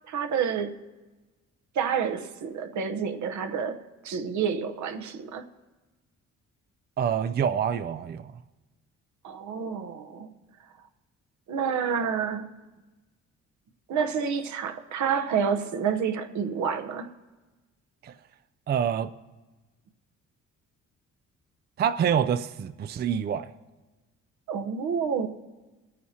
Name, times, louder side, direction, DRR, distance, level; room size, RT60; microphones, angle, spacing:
voice 1, 0.1-0.8 1.7-5.4 9.2-10.3 11.5-12.5 13.9-17.1 24.5-25.3, right 6 dB, 70° right, 0.9 m, -29 dB
voice 2, 7.0-8.3 18.0-18.1 18.7-19.1 21.8-23.5, right 8 dB, 35° right, 0.4 m, -26 dB
24.5 x 9.4 x 2.8 m
cardioid pair, 90°, 30 cm